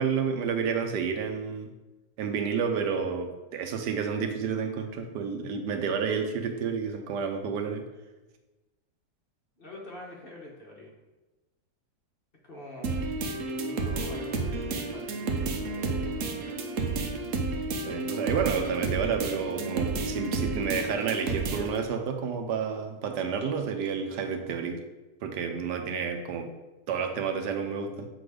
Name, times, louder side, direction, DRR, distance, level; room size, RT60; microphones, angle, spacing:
voice 1, 0.0-1.7 2.2-7.8 17.9-24.8 25.2-26.5 26.9-28.1, right 6 dB, 85° right, 5 dB, 1.4 m, -30 dB
voice 2, 9.6-10.9 12.4-13.0 13.4-16.7, left 2 dB, 35° left, -2 dB, 1.2 m, -45 dB
sound 1, 12.8-21.8, right 3 dB, 60° right, 1.0 m, -31 dB
6.9 x 3.9 x 4.9 m, 1.1 s
omnidirectional pair, 1.8 m